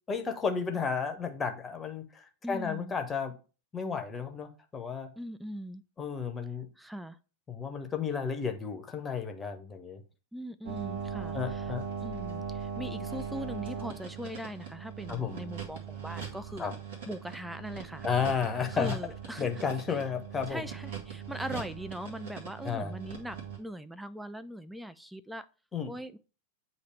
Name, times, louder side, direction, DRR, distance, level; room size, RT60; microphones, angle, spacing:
voice 1, 0.1-3.3 3.7-5.1 6.0-6.7 7.5-10.0 11.3-11.8 15.1-15.4 16.6-16.8 18.0-19.0 19.4-20.6 21.5-21.6 22.6-23.0 25.7-25.9, left 6 dB, 15° left, 0.9 m, -32 dB
voice 2, 2.4-2.9 5.2-5.8 6.8-7.2 10.3-11.7 12.0-16.7 17.1-18.1 18.8-19.5 20.5-25.5 25.8-26.2, equal, 5° right, 0.4 m, -40 dB
sound 1, 10.6-23.6, right 7 dB, 55° right, 1.8 m, -40 dB
8.2 x 2.8 x 4.6 m
figure-of-eight pair, 90°, 0 cm